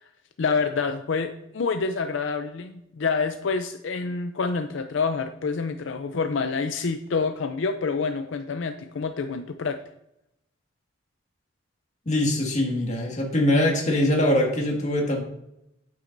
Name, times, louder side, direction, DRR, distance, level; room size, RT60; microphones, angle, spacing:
voice 1, 0.4-9.8, left 4 dB, 75° left, 8 dB, 0.5 m, -27 dB
voice 2, 12.1-15.2, left 1 dB, 40° left, 0 dB, 1.8 m, -22 dB
9.0 x 8.3 x 2.6 m, 0.84 s
head